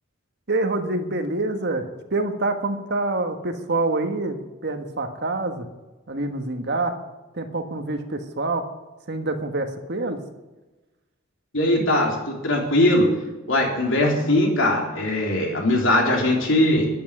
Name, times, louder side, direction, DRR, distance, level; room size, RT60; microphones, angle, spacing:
voice 1, 0.5-5.7 6.1-7.0 7.3-8.6 9.1-10.2, right 2 dB, 55° right, 6 dB, 1.5 m, -26 dB
voice 2, 11.5-13.1 13.5-16.9, left 1 dB, 60° left, 1 dB, 3.8 m, -20 dB
12.5 x 10.5 x 9.9 m, 1.1 s
head